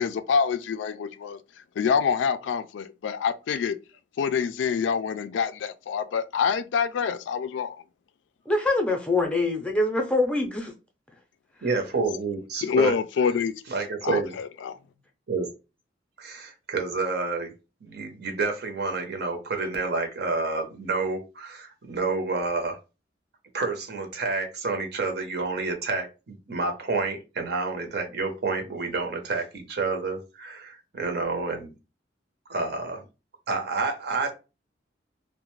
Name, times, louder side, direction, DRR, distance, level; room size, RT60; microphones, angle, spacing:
voice 1, 0.0-1.4 1.8-3.8 4.2-7.8 12.6-13.5 14.0-14.8, left 6 dB, 85° left, 0.3 m, -26 dB
voice 2, 8.5-10.7 11.6-11.7, left 2 dB, 5° left, 0.5 m, -24 dB
voice 3, 11.6-13.0 13.7-14.3 15.3-15.5 16.2-17.5 17.8-22.8 23.5-31.7 32.5-33.0 33.5-34.3, right 3 dB, 60° right, 0.7 m, -29 dB
2.4 x 2.1 x 3.0 m
head